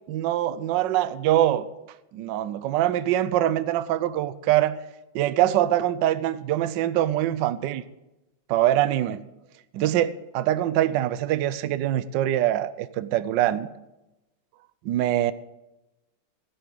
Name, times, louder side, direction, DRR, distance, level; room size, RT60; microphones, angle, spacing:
voice 1, 0.1-1.7 2.1-4.8 5.1-7.8 8.5-9.2 9.7-13.7 14.8-15.3, right 13 dB, 70° right, 1.2 m, -23 dB
16.0 x 6.9 x 9.1 m
omnidirectional pair, 2.2 m